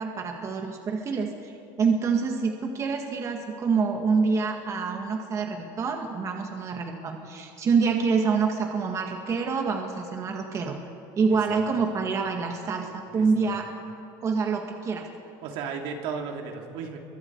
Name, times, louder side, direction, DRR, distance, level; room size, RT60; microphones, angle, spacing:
voice 1, 0.0-10.8 11.2-13.7 14.2-15.1, right 5 dB, 30° right, 2 dB, 2.1 m, -26 dB
voice 2, 11.3-11.6 13.1-13.5 15.4-17.0, right 6 dB, 70° right, 2 dB, 3.0 m, -35 dB
29.0 x 24.0 x 4.8 m, 2.5 s
cardioid pair, 145°, 10 cm